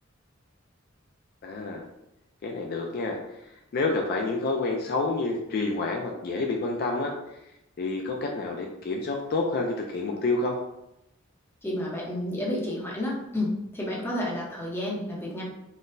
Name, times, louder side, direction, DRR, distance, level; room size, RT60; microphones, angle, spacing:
voice 1, 1.4-1.8 2.4-3.2 3.7-7.1 7.8-10.6, left 3 dB, 50° left, 1 dB, 0.3 m, -28 dB
voice 2, 11.6-15.4, left 1 dB, 10° left, -5 dB, 0.7 m, -30 dB
4.0 x 2.0 x 2.5 m, 0.88 s
head